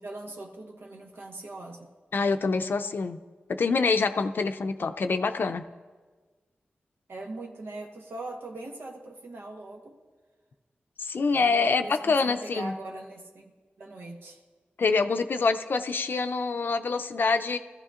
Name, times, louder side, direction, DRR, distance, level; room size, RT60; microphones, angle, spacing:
voice 1, 0.0-1.9 7.1-10.0 11.3-14.4, right 2 dB, 80° right, 1 dB, 1.2 m, -41 dB
voice 2, 2.1-3.2 3.5-5.6 11.0-12.7 14.8-17.6, left 4 dB, 65° left, 9 dB, 0.5 m, -26 dB
18.0 x 14.0 x 2.5 m, 1.4 s
wide cardioid pair, 75°, 4 cm